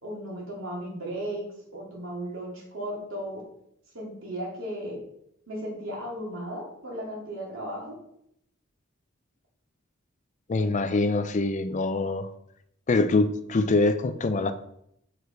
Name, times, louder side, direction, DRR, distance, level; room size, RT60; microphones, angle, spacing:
voice 1, 0.0-1.5 1.7-3.4 3.9-5.0 5.5-8.0, right 1 dB, 80° right, -3 dB, 2.6 m, -35 dB
voice 2, 10.5-12.3 12.9-14.5, left 3 dB, 35° left, 11 dB, 0.4 m, -24 dB
6.5 x 4.9 x 4.5 m, 0.75 s
head